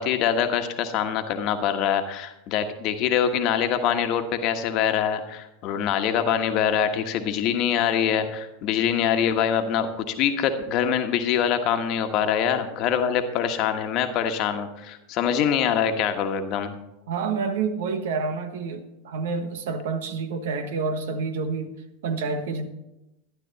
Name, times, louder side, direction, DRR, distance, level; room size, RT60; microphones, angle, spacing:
voice 1, 0.0-16.7, left 8 dB, 50° left, 7 dB, 1.3 m, -24 dB
voice 2, 17.1-21.7 22.0-22.7, right 4 dB, 65° right, 8 dB, 1.2 m, -28 dB
12.0 x 11.5 x 4.1 m, 0.93 s
hypercardioid pair, 90°, 0 cm